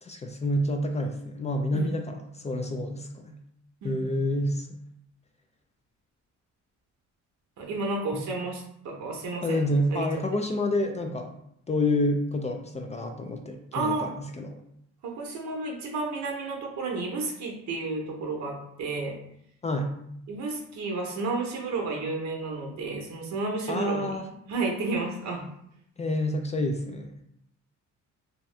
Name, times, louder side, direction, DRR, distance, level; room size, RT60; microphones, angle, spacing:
voice 1, 0.0-3.4 3.8-4.7 8.1-8.2 9.4-11.3 11.7-14.6 19.6-19.9 23.7-24.3 26.0-27.1, left 1 dB, 25° left, 4 dB, 0.3 m, -28 dB
voice 2, 3.8-4.2 7.6-10.1 13.7-14.1 15.0-19.2 20.3-24.2 24.5-25.4, right 3 dB, 65° right, 0 dB, 0.8 m, -32 dB
2.7 x 2.3 x 3.2 m, 0.73 s
cardioid pair, 90°, 30 cm